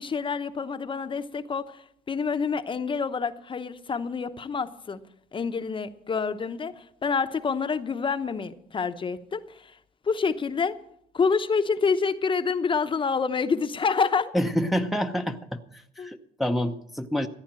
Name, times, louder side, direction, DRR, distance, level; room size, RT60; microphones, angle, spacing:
voice 1, 0.0-5.0 5.3-9.7 10.0-10.8 11.1-14.3 16.0-16.1, left 5 dB, 30° left, 10 dB, 0.9 m, -27 dB
voice 2, 14.3-15.6 16.0-17.3, equal, ahead, 5 dB, 0.7 m, -27 dB
14.5 x 9.6 x 7.5 m, 0.71 s
cardioid pair, 110°, 17 cm